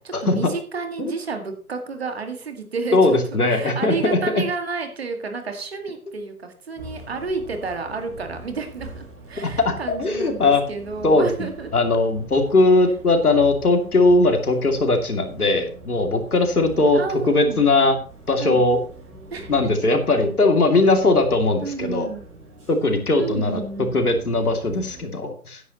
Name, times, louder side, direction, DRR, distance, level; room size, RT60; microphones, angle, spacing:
voice 1, 0.2-3.2 3.5-11.9 16.9-17.6 18.4-18.6 19.3-19.7 21.6-22.2 23.2-24.0, right 4 dB, 45° right, 6 dB, 2.0 m, -31 dB
voice 2, 2.9-4.2 9.4-10.6 11.0-11.3 11.7-17.0 17.3-18.0 18.3-18.8 19.5-22.1 22.7-23.6 23.9-25.6, left 2 dB, 75° left, 4 dB, 2.7 m, -19 dB
Bus, 6.8-25.0, right 1 dB, 20° right, 5.6 m, -43 dB
13.5 x 9.9 x 3.0 m, 0.41 s
figure-of-eight pair, 160°, 44 cm